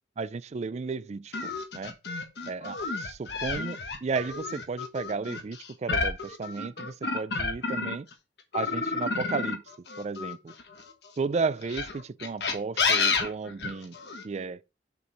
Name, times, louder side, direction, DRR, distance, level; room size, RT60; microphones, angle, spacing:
voice 1, 0.2-2.0 2.5-8.1 8.5-9.6 10.0-10.5 11.2-14.0 14.2-14.6, right 4 dB, 40° right, 0.4 m, -33 dB
sound 1, 1.3-8.1 8.5-10.9 11.6-14.2, left 4 dB, 65° left, 1.3 m, -30 dB
6.9 x 4.7 x 5.3 m
head